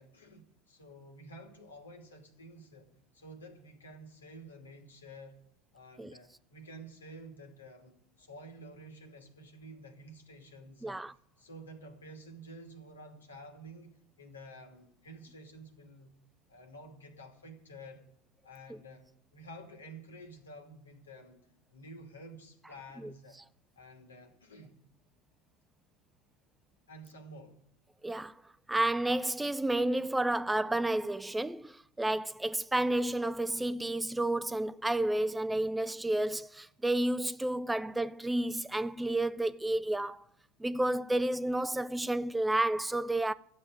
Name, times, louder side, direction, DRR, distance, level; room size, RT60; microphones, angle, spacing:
voice 1, 0.0-5.4 5.7-11.0 11.4-16.1 16.5-18.1 18.4-21.4 21.7-23.4 23.8-24.8 26.9-27.6, right 1 dB, 90° left, 2.5 m, -51 dB
voice 2, 10.8-11.1 18.7-18.8 23.0-23.1 28.0-28.3 28.7-40.2 40.6-43.3, right 1 dB, 10° right, 0.4 m, -31 dB
12.5 x 7.6 x 9.0 m
hypercardioid pair, 85°, 0 cm